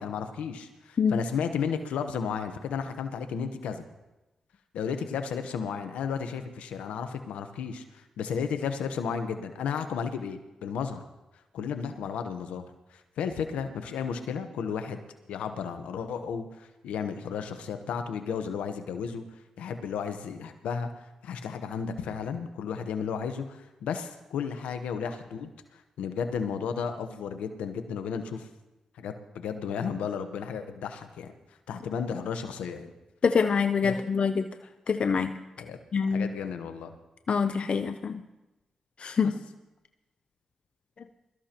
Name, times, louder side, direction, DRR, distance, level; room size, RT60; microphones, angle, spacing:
voice 1, 0.0-3.8 4.7-11.0 11.5-12.6 12.9-15.0 15.3-19.2 19.6-20.9 21.2-28.5 29.0-31.3 31.7-32.9 33.8-34.0 35.6-35.8 36.1-36.9 39.2-39.3, left 6 dB, 90° left, 8 dB, 1.0 m, -33 dB
voice 2, 33.2-34.5 34.9-35.3 35.9-36.3 37.3-38.2 39.0-39.4, left 5 dB, 60° left, 9 dB, 0.6 m, -25 dB
22.5 x 13.5 x 3.0 m, 1.0 s
supercardioid pair, 45°, 2 cm